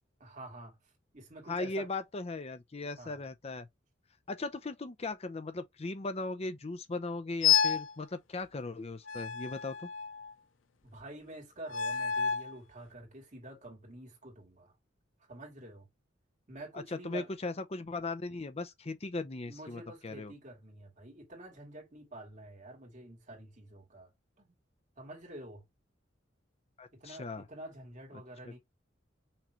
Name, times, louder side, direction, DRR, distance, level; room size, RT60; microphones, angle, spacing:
voice 1, 0.2-0.8 1.1-1.9 3.0-3.2 10.8-14.7 15.3-15.9 16.5-17.3 19.4-24.1 24.4-24.6 25.0-25.7 26.9-28.6, right 1 dB, 40° right, 2.4 m, -48 dB
voice 2, 1.5-3.7 4.3-9.9 16.7-20.3 26.8-27.4 28.4-28.6, left 3 dB, 30° left, 0.5 m, -38 dB
sound 1, 7.4-7.9 9.1-10.3 11.7-12.5, left 8 dB, 90° left, 0.5 m, -29 dB
5.9 x 3.1 x 2.9 m
head